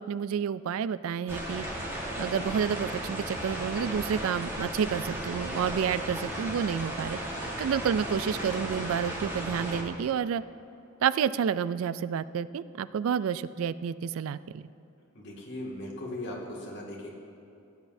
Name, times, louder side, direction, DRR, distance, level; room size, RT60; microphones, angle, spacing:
voice 1, 0.0-1.7 2.2-7.2 7.6-10.4 11.0-14.6, right 7 dB, 75° right, 16 dB, 0.3 m, -29 dB
sound 1, 1.3-9.8, right 1 dB, 10° right, 1.4 m, -35 dB
voice 2, 15.1-17.2, left 1 dB, 55° left, -4 dB, 2.0 m, -38 dB
17.0 x 9.3 x 2.7 m, 2.8 s
head